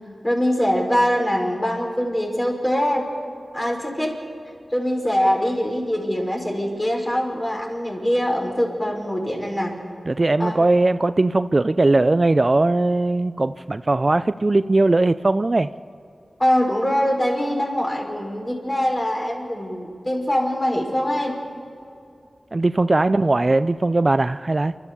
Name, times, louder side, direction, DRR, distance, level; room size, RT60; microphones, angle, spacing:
voice 1, 0.2-3.1 3.5-4.2 4.7-9.7 10.4-10.6 16.4-21.3, equal, 25° left, 0 dB, 5.3 m, -23 dB
voice 2, 10.1-15.7 22.5-24.7, right 2 dB, 40° right, 12 dB, 0.4 m, -19 dB
30.0 x 13.0 x 6.9 m, 2.5 s
wide cardioid pair, 65°, 0 cm